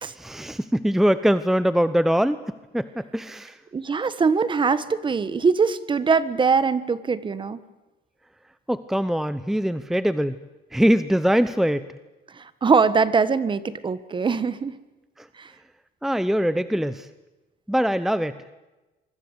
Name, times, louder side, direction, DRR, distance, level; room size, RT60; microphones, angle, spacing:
voice 1, 0.0-2.4 2.7-3.6 8.7-10.4 10.7-11.9 15.2-15.3 16.0-17.1 17.7-18.4, equal, ahead, 13 dB, 0.8 m, -22 dB
voice 2, 3.7-7.6 12.3-14.8 15.4-15.5, right 5 dB, 30° right, 15 dB, 1.5 m, -22 dB
25.0 x 24.0 x 8.3 m, 1.1 s
cardioid pair, 110°, 17 cm